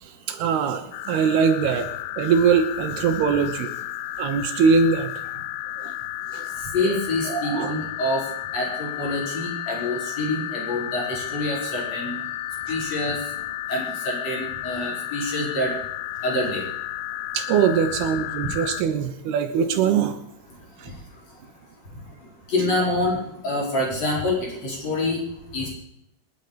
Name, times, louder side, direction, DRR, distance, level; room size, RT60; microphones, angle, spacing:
voice 1, 0.0-1.9 2.2-3.7 4.2-5.3 5.8-5.9 6.3-6.5 7.3-7.7 12.7-12.8 17.3-20.2 20.8-20.9, right 6 dB, 75° right, 7 dB, 2.9 m, -22 dB
sound 1, 0.9-18.8, left 14 dB, 85° left, 2.9 m, -33 dB
voice 2, 6.7-8.2 8.5-12.2 12.7-13.2 13.7-15.7 16.2-16.6 22.5-23.2 23.4-25.2 25.5-25.7, left 2 dB, 40° left, -3 dB, 5.8 m, -26 dB
28.0 x 9.8 x 5.1 m, 0.79 s
omnidirectional pair, 4.8 m